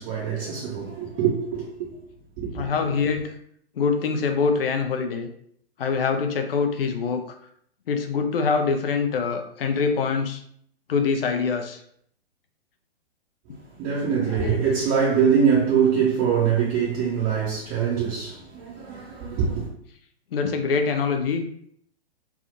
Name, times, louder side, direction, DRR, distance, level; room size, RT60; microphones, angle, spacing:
voice 1, 0.0-1.9 2.4-2.7 13.8-19.7, right 7 dB, 25° right, 0.6 m, -23 dB
voice 2, 2.5-3.3 3.8-5.3 5.8-7.2 7.9-10.4 10.9-11.8 14.3-14.6 20.3-21.5, left 5 dB, 65° left, 0.5 m, -24 dB
3.5 x 2.3 x 2.5 m
figure-of-eight pair, 115°, 31 cm